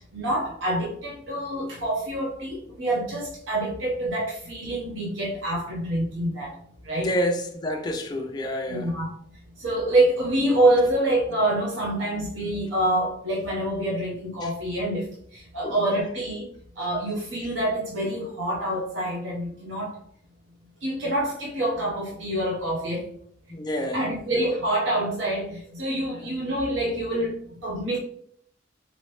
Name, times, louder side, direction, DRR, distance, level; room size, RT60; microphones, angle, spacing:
voice 1, 0.0-6.6 6.8-7.1 8.7-9.1 9.6-16.5 16.8-20.0 20.8-23.1 23.9-28.0, right 1 dB, 90° right, 0.8 m, -26 dB
voice 2, 7.0-8.9 14.4-14.5 15.6-15.8 23.5-24.0 26.2-26.3, equal, 20° left, 0.5 m, -28 dB
3.9 x 3.0 x 3.1 m
head